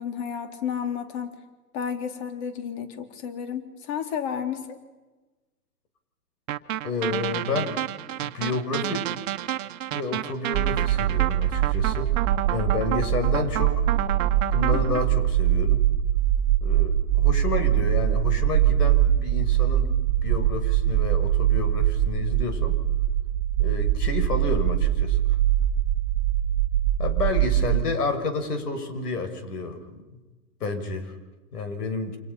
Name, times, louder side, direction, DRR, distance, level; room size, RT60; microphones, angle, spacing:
voice 1, 0.0-1.4 1.7-4.8 14.7-15.0, left 8 dB, 45° left, 6 dB, 4.0 m, -32 dB
sound 1, 6.5-15.0, right 12 dB, 55° right, 1.4 m, -30 dB
voice 2, 6.8-7.8 8.2-9.1 9.9-12.1 12.5-13.9 14.5-15.8 16.6-19.9 20.2-22.8 23.6-25.4 27.0-29.8 30.1-30.2 30.6-31.1 31.5-32.2, left 3 dB, 75° left, 7 dB, 6.7 m, -30 dB
sound 2, 10.5-27.8, right 12 dB, 35° right, 1.3 m, -23 dB
29.5 x 27.5 x 5.8 m, 1.2 s
hypercardioid pair, 140°, 47 cm